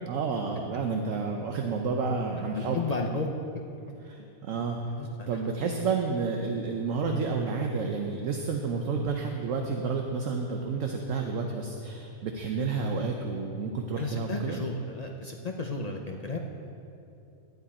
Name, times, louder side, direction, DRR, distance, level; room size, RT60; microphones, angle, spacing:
voice 1, 0.1-2.8 4.1-4.9 5.3-14.6, right 4 dB, 65° right, 2 dB, 1.0 m, -30 dB
voice 2, 2.1-3.3 4.2-4.3 5.0-5.4 14.0-16.4, left 3 dB, 50° left, 1 dB, 0.4 m, -34 dB
12.5 x 9.3 x 4.2 m, 2.7 s
omnidirectional pair, 1.5 m